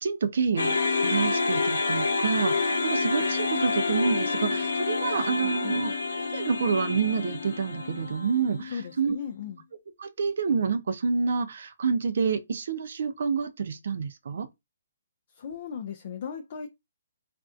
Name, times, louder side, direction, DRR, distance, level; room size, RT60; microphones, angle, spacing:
voice 1, 0.0-5.9 6.3-9.2 10.0-14.5, right 5 dB, 60° right, 0.5 m, -28 dB
sound 1, 0.6-8.8, left 4 dB, 80° left, 0.7 m, -28 dB
voice 2, 5.4-5.8 8.7-9.6 15.3-16.7, left 7 dB, 50° left, 0.4 m, -37 dB
2.5 x 2.2 x 2.4 m
hypercardioid pair, 150°, 0 cm